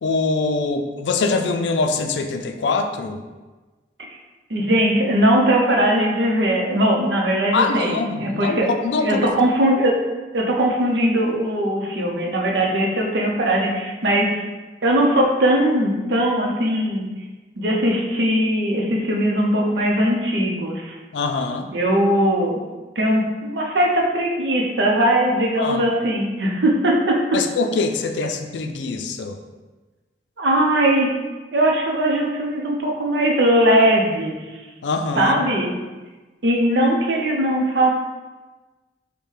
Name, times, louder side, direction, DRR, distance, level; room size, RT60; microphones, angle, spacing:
voice 1, 0.0-3.2 7.5-9.3 21.1-21.7 25.6-25.8 27.3-29.4 34.8-35.4, left 3 dB, 90° left, 5 dB, 0.4 m, -23 dB
voice 2, 4.5-8.7 9.0-10.0 10.3-14.4 14.8-17.1 17.6-20.9 21.7-22.6 23.0-27.4 30.4-31.1 31.5-34.4 35.2-35.7 36.4-37.9, right 1 dB, 80° right, 0 dB, 0.7 m, -20 dB
5.4 x 2.2 x 3.3 m, 1.2 s
head